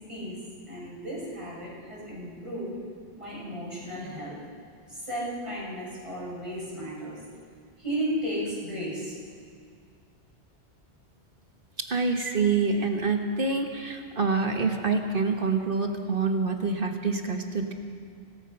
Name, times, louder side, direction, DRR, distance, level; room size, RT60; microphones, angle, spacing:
voice 1, 0.7-2.7 3.2-4.3 4.9-7.2 7.8-9.2, equal, 30° right, -7 dB, 7.3 m, -34 dB
voice 2, 11.8-17.7, right 4 dB, 55° right, 4 dB, 1.6 m, -26 dB
25.0 x 18.0 x 6.0 m, 2.2 s
omnidirectional pair, 1.1 m